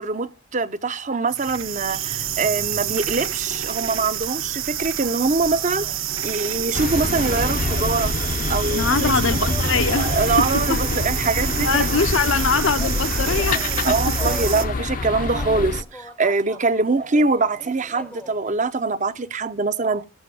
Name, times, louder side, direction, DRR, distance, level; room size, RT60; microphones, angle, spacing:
voice 1, 0.0-8.1 8.5-9.2 10.0-12.1 13.8-20.1, right 3 dB, 35° right, 0.7 m, -23 dB
sound 1, 1.3-14.7, right 10 dB, 70° right, 1.2 m, -28 dB
sound 2, 5.8-12.1 12.3-18.9 19.2-19.3, left 1 dB, 5° left, 0.7 m, -42 dB
sound 3, 6.7-15.8, left 3 dB, 40° left, 0.6 m, -26 dB
voice 2, 8.7-10.1 10.4-10.8 11.6-13.6 13.9-14.0, left 5 dB, 70° left, 0.8 m, -22 dB
13.0 x 8.0 x 6.4 m
head